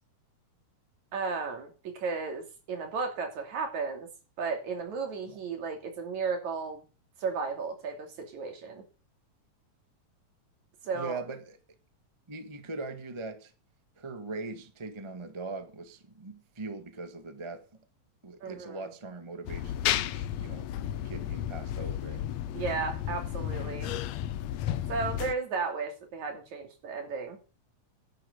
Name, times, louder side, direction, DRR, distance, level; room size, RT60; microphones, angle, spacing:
voice 1, 1.1-4.1 4.4-6.8 7.2-8.8 10.8-11.2 18.4-18.8 22.5-23.9 24.9-27.4, right 4 dB, 60° right, 3.9 m, -34 dB
voice 2, 10.9-11.6 12.3-13.5 14.0-17.7 18.2-20.7 21.0-22.3, right 3 dB, 35° right, 0.4 m, -41 dB
sound 1, 19.5-25.4, left 11 dB, 75° left, 1.7 m, -33 dB
11.0 x 9.2 x 6.6 m
omnidirectional pair, 3.8 m